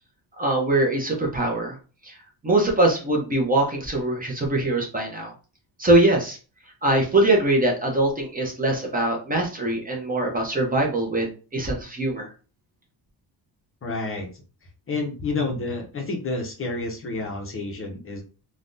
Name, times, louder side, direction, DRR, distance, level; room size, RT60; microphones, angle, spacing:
voice 1, 0.4-1.8 2.0-2.2 2.4-5.3 5.8-6.4 6.8-12.3, right 2 dB, 20° right, 0 dB, 0.6 m, -22 dB
voice 2, 13.8-14.3 14.9-18.2, left 3 dB, 30° left, 1 dB, 0.6 m, -29 dB
3.4 x 2.2 x 2.6 m, 0.36 s
cardioid pair, 140°, 43 cm